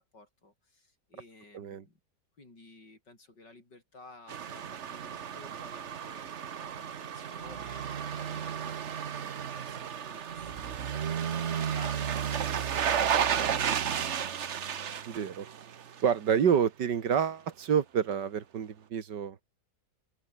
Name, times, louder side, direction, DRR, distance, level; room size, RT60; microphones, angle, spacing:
voice 1, 0.0-2.0 2.4-14.3, left 2 dB, 85° left, 6.8 m, -55 dB
voice 2, 1.5-1.8 15.1-15.5 16.0-19.4, right 7 dB, 80° right, 2.2 m, -28 dB
sound 1, 4.3-16.2 16.5-16.6, right 8 dB, 50° right, 1.1 m, -33 dB
open air
omnidirectional pair, 1.9 m